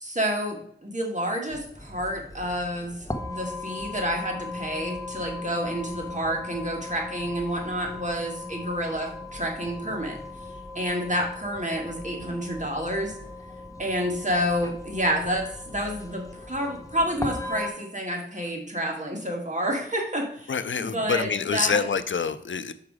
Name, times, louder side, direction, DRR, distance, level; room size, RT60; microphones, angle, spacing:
voice 1, 0.0-10.2 10.7-13.1 13.8-20.5 20.8-21.9, equal, 40° right, 1 dB, 2.0 m, -29 dB
sound 1, 1.5-17.7, left 2 dB, 15° left, 1.0 m, -38 dB
voice 2, 20.5-22.7, left 5 dB, 85° left, 13 dB, 0.5 m, -26 dB
7.0 x 4.8 x 4.9 m, 0.64 s
wide cardioid pair, 50°, 19 cm